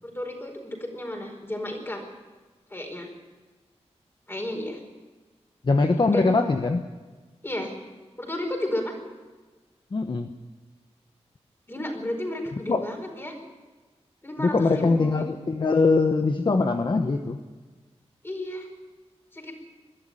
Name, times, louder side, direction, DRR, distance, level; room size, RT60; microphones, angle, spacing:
voice 1, 0.0-2.0 2.7-3.1 4.3-4.8 6.1-6.5 7.4-7.7 8.2-8.9 11.7-13.4 14.2-15.2 18.2-18.7 19.3-19.6, left 1 dB, 20° left, 3 dB, 4.8 m, -32 dB
voice 2, 5.6-6.8 9.9-10.3 12.7-12.9 14.4-17.4, left 3 dB, 45° left, 6 dB, 1.1 m, -22 dB
21.5 x 12.5 x 9.7 m, 1.4 s
wide cardioid pair, 110°, 11 cm